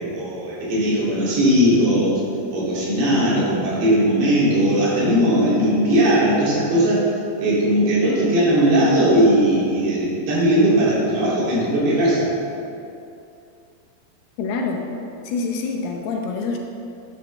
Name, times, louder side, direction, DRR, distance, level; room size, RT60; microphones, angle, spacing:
voice 1, 0.0-2.2 2.5-7.1 7.4-12.3, equal, 90° right, -8 dB, 4.8 m, -18 dB
voice 2, 14.4-14.8 15.2-16.6, left 4 dB, 75° left, 1 dB, 2.5 m, -26 dB
10.0 x 9.6 x 3.2 m, 2.6 s
omnidirectional pair, 4.8 m